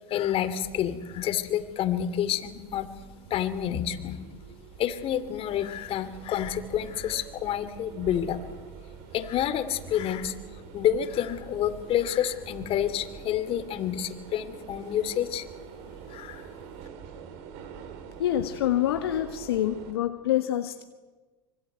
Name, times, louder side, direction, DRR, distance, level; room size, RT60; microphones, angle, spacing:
voice 1, 0.1-2.9 3.3-4.2 4.8-8.4 9.1-10.3 10.7-15.5 16.1-16.4, left 10 dB, 45° left, 12 dB, 2.8 m, -28 dB
sound 1, 0.6-19.9, right 6 dB, 65° right, 4.1 m, -45 dB
voice 2, 18.2-20.8, left 12 dB, 80° left, 7 dB, 1.5 m, -26 dB
25.0 x 24.5 x 9.2 m, 1.3 s
hypercardioid pair, 85°, 13 cm